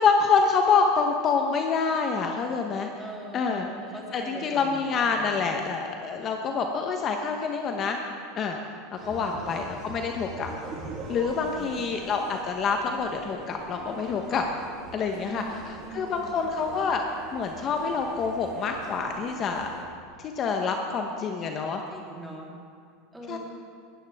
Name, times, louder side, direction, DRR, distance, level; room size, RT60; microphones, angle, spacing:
voice 1, 0.0-2.9 3.3-3.7 4.1-8.0 8.4-8.6 8.9-10.5 11.1-14.5 14.9-15.4 15.9-17.1 17.3-19.7 20.2-21.8 23.3-23.4, left 5 dB, 35° left, 3 dB, 1.0 m, -26 dB
voice 2, 3.0-5.3 9.0-9.5 11.4-11.9 15.1-16.3 21.4-22.5 23.1-23.4, right 2 dB, 5° right, -4 dB, 3.2 m, -42 dB
sound 1, 9.0-19.8, right 3 dB, 40° right, 2.6 m, -43 dB
18.0 x 13.0 x 3.5 m, 2.2 s
supercardioid pair, 120°, 0 cm